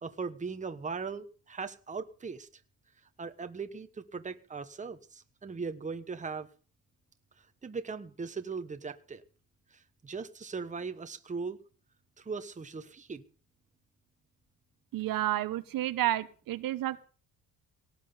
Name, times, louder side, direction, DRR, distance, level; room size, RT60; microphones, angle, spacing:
voice 1, 0.0-2.5 3.2-6.5 7.6-9.2 9.7-11.6 12.2-13.2, right 5 dB, 20° right, 9 dB, 1.3 m, -39 dB
voice 2, 14.9-17.0, right 14 dB, 75° right, 12 dB, 1.2 m, -31 dB
18.0 x 6.1 x 9.8 m, 0.39 s
cardioid pair, 140°, 34 cm